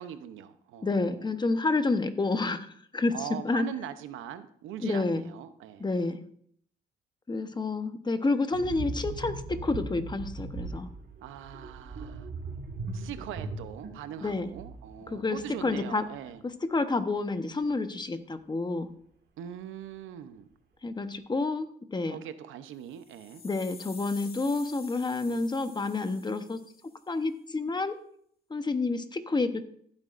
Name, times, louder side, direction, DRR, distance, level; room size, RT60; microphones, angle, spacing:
voice 1, 0.0-1.3 3.1-5.9 11.2-12.3 12.9-16.4 19.4-20.5 22.1-23.4, right 10 dB, 90° right, 11 dB, 0.8 m, -41 dB
voice 2, 0.8-2.7 2.9-3.7 4.8-5.2 5.8-6.2 7.3-10.9 14.2-14.5 15.1-16.1 16.4-18.9 20.8-22.2 23.4-26.6 27.1-27.9 28.5-29.6, left 3 dB, 20° left, 9 dB, 0.9 m, -29 dB
sound 1, 8.5-15.9 16.2-16.4, right 3 dB, 60° right, 1.8 m, -39 dB
sound 2, 22.8-27.0, left 5 dB, 50° left, 1.9 m, -50 dB
15.5 x 8.7 x 2.5 m, 0.64 s
cardioid pair, 90°, 20 cm